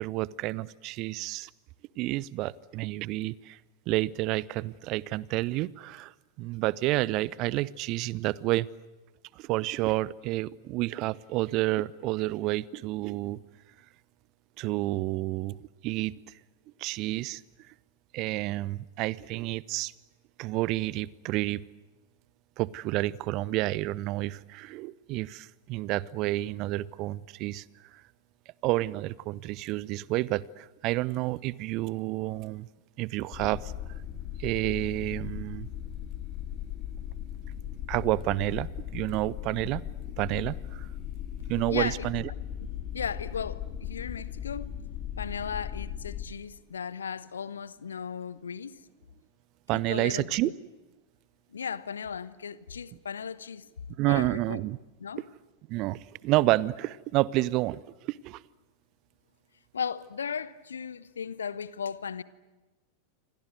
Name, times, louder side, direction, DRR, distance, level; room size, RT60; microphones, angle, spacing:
voice 1, 0.0-1.5 2.0-3.6 3.9-6.1 6.4-8.7 9.3-13.4 14.6-15.6 15.8-16.2 16.8-17.4 18.1-19.9 20.4-21.6 22.6-27.6 27.9-28.0 28.6-32.7 33.0-33.7 34.4-35.7 37.9-39.8 40.2-40.9 41.5-42.3 49.7-50.5 54.0-54.8 55.7-58.4, right 18 dB, 40° right, 0.8 m, -29 dB
sound 1, 33.3-46.2, left 10 dB, 35° left, 3.3 m, -38 dB
voice 2, 41.7-42.1 42.9-44.7 45.2-48.8 49.7-50.5 51.5-53.7 54.0-54.6 55.0-55.3 59.7-62.2, left 7 dB, 70° left, 1.1 m, -36 dB
28.5 x 25.5 x 7.9 m
figure-of-eight pair, 90°, 0 cm